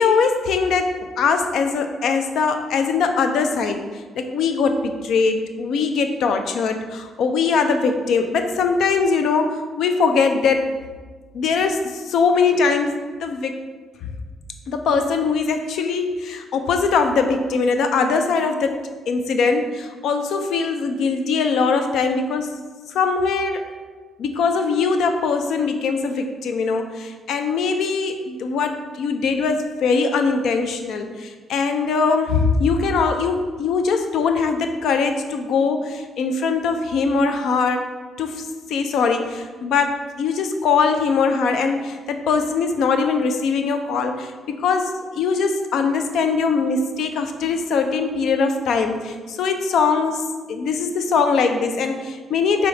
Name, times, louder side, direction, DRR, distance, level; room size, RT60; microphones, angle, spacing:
voice 1, 0.0-3.8 4.2-10.8 11.3-13.6 14.7-22.5 22.9-23.7 24.2-37.8 38.2-52.7, left 5 dB, 75° left, 7 dB, 0.4 m, -21 dB
4.8 x 3.0 x 3.2 m, 1.4 s
cardioid pair, 90°, 0 cm